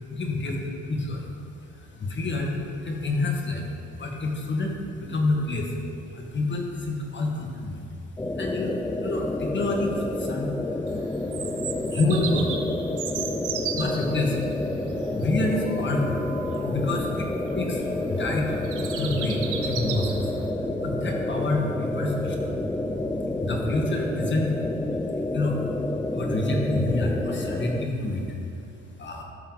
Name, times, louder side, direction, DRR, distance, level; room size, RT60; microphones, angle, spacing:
voice 1, 0.1-0.6 0.9-1.3 1.7-5.8 6.1-7.9 8.3-11.5 11.9-12.8 13.5-14.5 15.1-16.2 16.6-20.2 20.6-22.5 23.4-24.5 25.3-25.6 26.1-28.2 29.0-29.2, left 2 dB, 40° left, 0 dB, 1.9 m, -28 dB
sound 1, 8.2-27.9, left 2 dB, 10° left, 0.4 m, -29 dB
Bird vocalization bird call bird song, 10.9-20.5, right 7 dB, 85° right, 1.1 m, -37 dB
sound 2, 14.7-23.9, right 2 dB, 40° right, 0.9 m, -39 dB
14.0 x 6.8 x 4.1 m, 2.6 s
cardioid pair, 90°, 30 cm